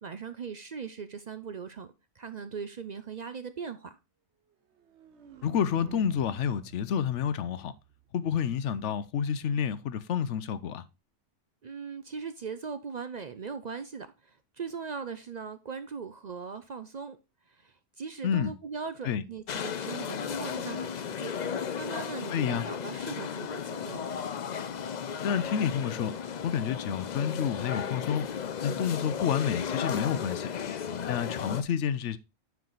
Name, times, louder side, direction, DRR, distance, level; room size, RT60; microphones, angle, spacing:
voice 1, 0.0-1.9 2.2-4.0 11.6-17.2 17.5-21.3 21.8-24.0, right 5 dB, 50° right, 0.6 m, -39 dB
sound 1, 4.7-8.7, right 6 dB, 70° right, 1.2 m, -49 dB
voice 2, 5.4-7.7 8.1-10.8 18.2-18.5 19.0-19.2 22.3-22.7 25.2-26.1 26.4-28.3 28.6-30.5 31.1-32.2, left 8 dB, 80° left, 1.0 m, -29 dB
sound 2, 19.5-31.6, left 7 dB, 50° left, 0.6 m, -35 dB
9.4 x 4.8 x 3.9 m
omnidirectional pair, 1.2 m